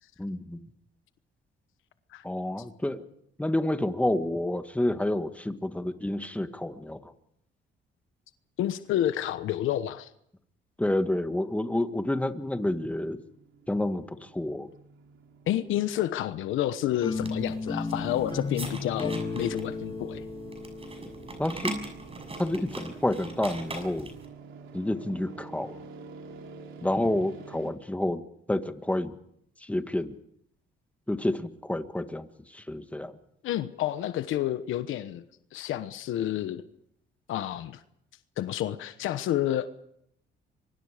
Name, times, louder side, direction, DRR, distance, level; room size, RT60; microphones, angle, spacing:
voice 1, 0.2-0.6 2.2-3.0 3.4-7.1 10.8-13.2 13.7-14.7 21.4-21.8 22.4-24.1 24.7-25.8 26.8-28.2 28.5-29.1 29.6-30.1 31.1-33.1, left 1 dB, 5° left, 9 dB, 1.7 m, -29 dB
voice 2, 8.6-10.1 15.5-20.2 33.4-35.2 35.5-36.6 37.3-37.8 38.4-39.7, left 12 dB, 85° left, 12 dB, 1.1 m, -29 dB
sound 1, 12.8-27.7, right 5 dB, 80° right, 3.3 m, -49 dB
sound 2, 17.0-22.1, left 4 dB, 25° left, 2.4 m, -35 dB
sound 3, 17.1-24.3, right 2 dB, 30° right, 6.6 m, -41 dB
28.0 x 24.0 x 5.1 m, 0.73 s
cardioid pair, 90°, 20 cm